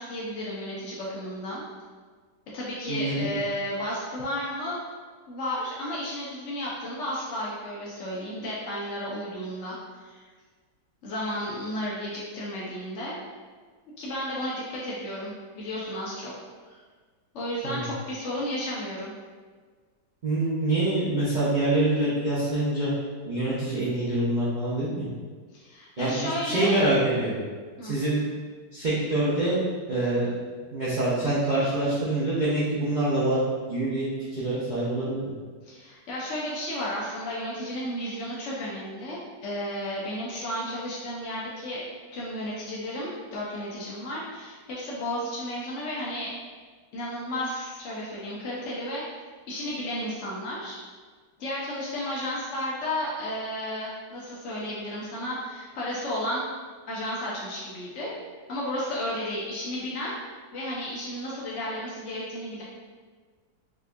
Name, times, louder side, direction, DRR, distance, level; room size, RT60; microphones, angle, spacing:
voice 1, 0.0-1.6 2.5-4.8 5.3-10.2 11.0-13.2 14.0-16.3 16.7-16.8 17.3-19.1 25.5-26.8 27.8-28.0 35.7-41.8 42.1-46.3 46.9-49.0 49.5-50.8 51.4-56.5 56.9-58.1 58.5-60.2 60.5-62.6, left 1 dB, 70° left, -6 dB, 0.7 m, -33 dB
voice 2, 2.9-3.3 17.6-17.8 20.2-22.9 23.2-25.1 26.0-27.3 27.8-28.2 28.7-29.6 29.9-30.3 30.7-33.4 33.7-35.2, right 1 dB, 75° right, -11 dB, 0.4 m, -25 dB
5.0 x 2.4 x 2.5 m, 1.5 s
omnidirectional pair, 1.9 m